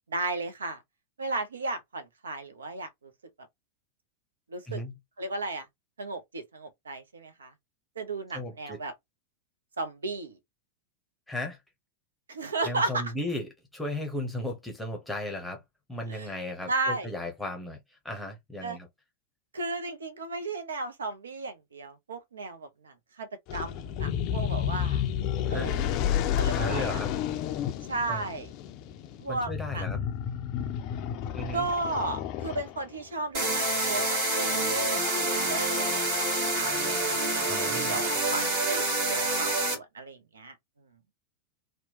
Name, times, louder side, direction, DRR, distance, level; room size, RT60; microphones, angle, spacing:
voice 1, 0.1-0.8 1.2-3.1 4.5-4.8 5.2-5.7 6.0-7.5 8.0-8.9 9.8-10.4 12.3-13.1 16.1-16.3 16.7-17.1 18.6-18.8 19.5-25.0 25.5-27.0 27.9-28.5 29.2-29.9 31.5-40.5, right 3 dB, 70° right, 0.6 m, -34 dB
voice 2, 8.3-8.8 11.3-11.6 12.6-15.6 15.9-18.9 25.5-25.7 26.5-27.1 28.1-28.3 29.3-30.0 31.3-31.7 37.5-38.0, left 1 dB, 5° left, 0.8 m, -35 dB
sound 1, 23.5-33.0, left 9 dB, 40° left, 0.4 m, -31 dB
sound 2, 33.3-39.7, right 2 dB, 50° right, 1.5 m, -27 dB
2.9 x 2.1 x 2.8 m
figure-of-eight pair, 90°, 0 cm